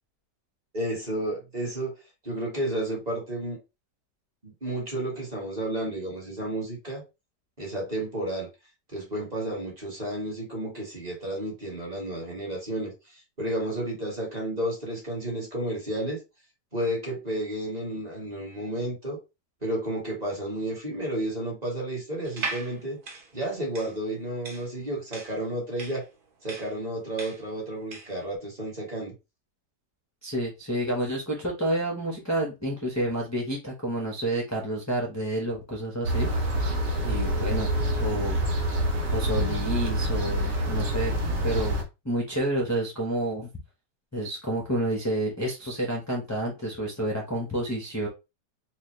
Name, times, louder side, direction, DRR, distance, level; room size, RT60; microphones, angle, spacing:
voice 1, 0.7-2.0 2.2-3.6 4.4-7.0 7.6-8.5 8.9-16.2 16.7-19.2 19.6-23.0 23.3-26.0 26.4-29.1, right 1 dB, 25° right, 1.5 m, -32 dB
sound 1, 22.2-28.2, right 4 dB, 45° right, 0.7 m, -38 dB
voice 2, 30.2-36.7 37.0-37.7 38.0-38.4 39.1-41.8 42.0-43.5 44.1-48.1, right 1 dB, 15° left, 0.5 m, -29 dB
sound 2, 36.0-41.8, equal, 80° right, 1.7 m, -26 dB
4.2 x 2.5 x 3.1 m
omnidirectional pair, 1.8 m